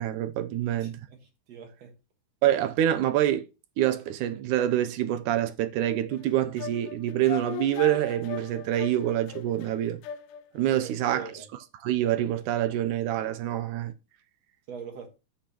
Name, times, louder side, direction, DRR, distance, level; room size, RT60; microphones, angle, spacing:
voice 1, 0.0-1.0 2.4-3.5 3.8-10.0 10.5-11.2 11.8-13.9, right 12 dB, 75° right, 2.0 m, -26 dB
voice 2, 0.5-2.0 10.7-11.5 14.7-15.1, right 6 dB, 55° right, 2.5 m, -43 dB
sound 1, 6.1-10.7, left 9 dB, 80° left, 2.2 m, -39 dB
10.0 x 7.9 x 3.0 m
omnidirectional pair, 3.8 m